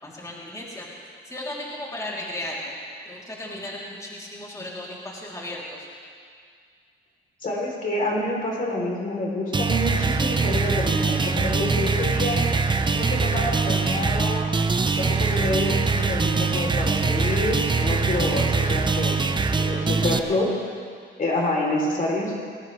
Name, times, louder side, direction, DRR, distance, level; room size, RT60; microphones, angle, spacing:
voice 1, 0.0-2.8 3.0-5.9 19.9-20.2, left 1 dB, 15° left, -5 dB, 3.2 m, -36 dB
voice 2, 7.4-12.4 12.9-14.4 15.0-19.2 19.5-20.5 21.2-22.3, left 1 dB, 45° left, -1 dB, 3.4 m, -27 dB
sound 1, 9.5-20.2, right 4 dB, 25° right, 0.8 m, -23 dB
20.5 x 18.0 x 3.3 m, 2.1 s
cardioid pair, 90°, 20 cm